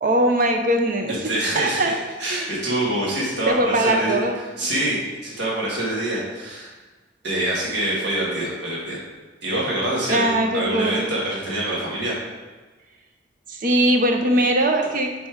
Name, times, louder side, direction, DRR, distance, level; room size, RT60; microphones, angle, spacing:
voice 1, 0.0-1.1 1.5-2.0 2.2-2.5 3.5-4.4 10.1-11.0 13.5-15.3, right 1 dB, 45° right, 3 dB, 0.7 m, -21 dB
voice 2, 1.2-4.2 4.6-6.7 7.2-9.0 9.4-12.2, right 1 dB, 65° right, -6 dB, 1.7 m, -25 dB
5.4 x 4.3 x 4.6 m, 1.3 s
head